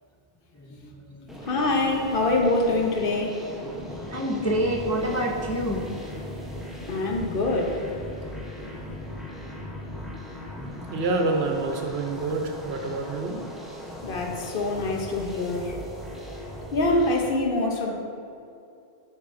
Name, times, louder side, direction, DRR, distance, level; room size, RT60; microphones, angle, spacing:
voice 1, 0.5-1.3 4.1-5.9, equal, 25° left, -2 dB, 0.3 m, -28 dB
sound 1, 1.3-17.3, left 1 dB, ahead, 0.7 m, -38 dB
voice 2, 1.4-3.4 6.9-7.8 14.0-15.8 16.7-17.9, left 2 dB, 60° left, 1 dB, 0.9 m, -25 dB
voice 3, 10.9-13.5, right 3 dB, 80° right, 3 dB, 1.0 m, -27 dB
8.4 x 5.4 x 2.6 m, 2.6 s
omnidirectional pair, 1.0 m